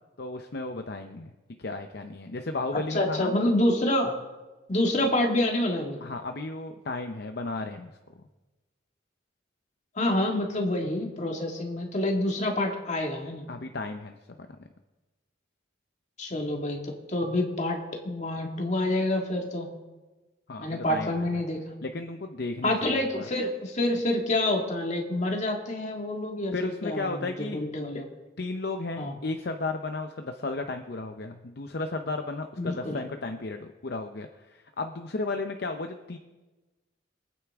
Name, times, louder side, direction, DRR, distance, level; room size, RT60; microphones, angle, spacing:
voice 1, 0.2-1.3 1.6-3.3 6.0-8.3 13.5-14.2 14.6-14.7 20.5-21.3 21.8-23.3 26.5-27.6 28.4-36.2, left 3 dB, 55° left, 6 dB, 0.7 m, -34 dB
voice 2, 2.7-4.2 4.7-6.0 10.0-13.4 16.2-19.7 20.6-21.7 22.6-28.1 29.0-29.1 32.6-33.0, left 1 dB, 35° left, 1 dB, 2.0 m, -27 dB
24.0 x 9.3 x 3.6 m, 1.2 s
head